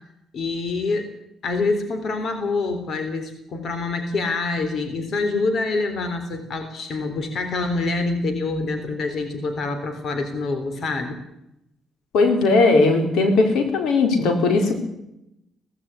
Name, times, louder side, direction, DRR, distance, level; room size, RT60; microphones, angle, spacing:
voice 1, 0.3-1.1 1.4-11.2, left 3 dB, 60° left, 8 dB, 3.7 m, -26 dB
voice 2, 12.1-14.8, left 3 dB, 85° left, 6 dB, 4.7 m, -18 dB
18.0 x 16.0 x 9.8 m, 0.84 s
cardioid pair, 90°, 0 cm